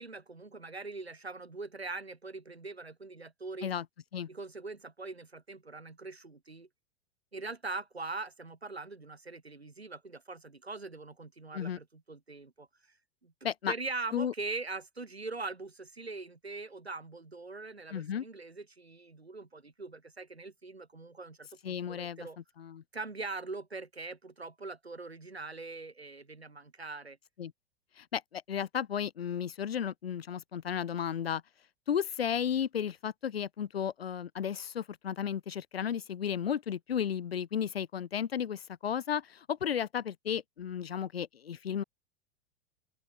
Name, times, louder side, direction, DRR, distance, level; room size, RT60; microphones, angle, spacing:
voice 1, 0.0-3.7 4.3-6.7 7.3-12.7 13.2-13.3 13.7-22.4 22.9-27.2, right 3 dB, 90° right, 5.2 m, -42 dB
voice 2, 17.9-18.2 21.6-22.3 22.6-22.8 27.4-27.5 28.0-31.4 31.9-41.8, left 8 dB, 75° left, 1.6 m, -34 dB
open air
figure-of-eight pair, 95°, 31 cm